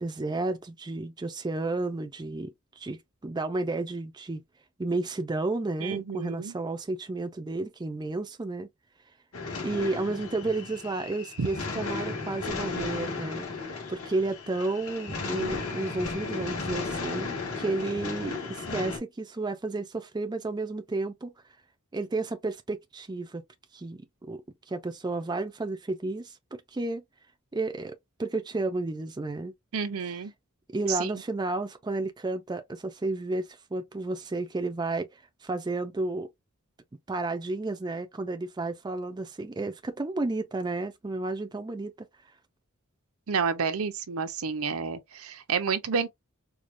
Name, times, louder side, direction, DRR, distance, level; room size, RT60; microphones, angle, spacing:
voice 1, 0.0-4.4 4.8-8.7 9.6-21.3 21.9-23.4 23.7-24.4 24.7-27.0 27.5-29.5 30.7-36.3 37.1-42.1, right 2 dB, 20° right, 0.4 m, -32 dB
voice 2, 5.8-6.5 11.4-11.5 29.7-30.3 30.9-31.1 43.3-46.1, right 5 dB, 70° right, 0.6 m, -30 dB
sound 1, 9.3-19.0, left 4 dB, 70° left, 1.8 m, -35 dB
4.7 x 2.2 x 2.5 m
head